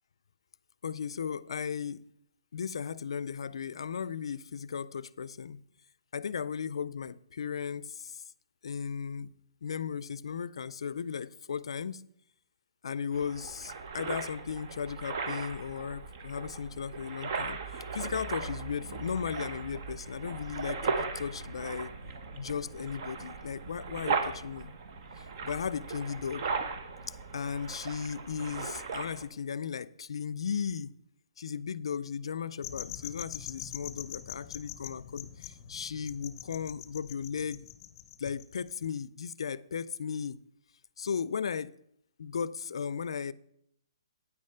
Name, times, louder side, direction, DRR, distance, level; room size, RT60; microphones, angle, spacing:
voice 1, 0.8-2.1 2.5-5.6 6.1-8.2 8.6-9.3 9.6-12.0 12.8-21.9 22.4-24.7 25.2-26.5 27.1-30.9 31.4-37.6 38.2-40.4 41.0-41.7 42.2-43.3, left 7 dB, 75° left, 0.4 m, -36 dB
sound 1, 13.1-29.3, right 4 dB, 45° right, 1.1 m, -37 dB
sound 2, 32.6-38.9, left 10 dB, 35° left, 0.6 m, -44 dB
9.1 x 6.5 x 5.6 m
hypercardioid pair, 160°, 3 cm